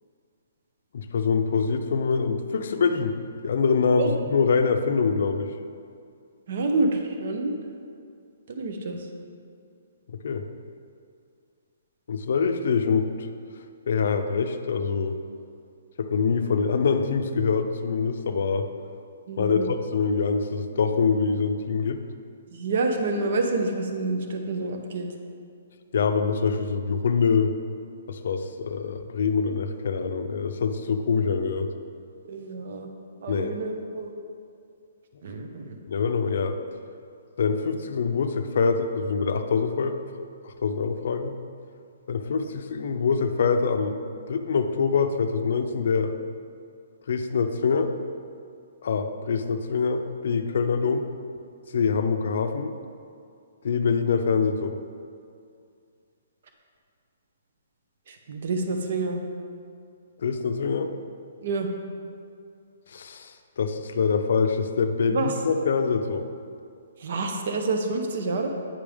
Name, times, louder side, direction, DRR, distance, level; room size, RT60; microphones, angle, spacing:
voice 1, 0.9-3.1 3.4-5.5 10.2-10.4 12.1-13.1 13.9-15.2 16.0-18.7 19.4-22.0 25.9-27.5 28.1-31.7 33.3-33.5 35.9-36.6 37.4-40.0 40.4-41.3 42.1-44.0 44.3-46.1 47.1-47.9 48.8-51.1 51.7-52.7 53.6-54.8 60.2-60.9 62.9-66.3, left 5 dB, 60° left, 7 dB, 0.5 m, -24 dB
voice 2, 6.5-7.6 8.5-9.1 19.3-19.7 22.5-25.1 32.3-32.9 33.2-34.1 35.2-35.8 58.1-59.2 61.4-61.7 65.1-65.3 67.0-68.5, right 3 dB, 50° right, 4 dB, 0.6 m, -28 dB
8.7 x 5.1 x 3.5 m, 2.3 s
hypercardioid pair, 170°, 0 cm